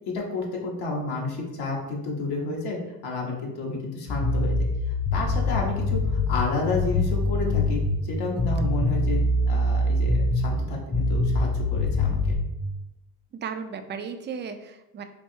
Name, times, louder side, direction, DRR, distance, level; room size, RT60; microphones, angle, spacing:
voice 1, 0.1-4.5 5.1-9.2 9.5-12.2, left 3 dB, 70° left, -1 dB, 1.0 m, -31 dB
sound 1, 4.1-8.0 8.4-10.6 10.9-12.4, left 2 dB, 20° left, 0.6 m, -24 dB
voice 2, 13.3-15.0, right 6 dB, 30° right, 8 dB, 0.4 m, -35 dB
4.6 x 2.6 x 2.7 m, 0.96 s
cardioid pair, 95°, 40 cm